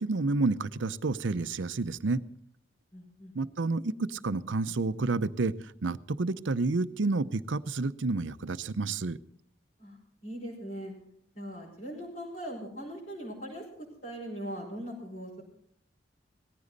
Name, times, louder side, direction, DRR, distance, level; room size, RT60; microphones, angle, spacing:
voice 1, 0.0-2.2 3.4-5.5 5.8-9.2, right 3 dB, 75° right, 15 dB, 0.6 m, -29 dB
voice 2, 2.9-3.3 9.8-10.0 10.2-10.9 11.4-15.4, equal, 45° left, -4 dB, 5.2 m, -40 dB
18.5 x 15.0 x 4.0 m, 0.68 s
head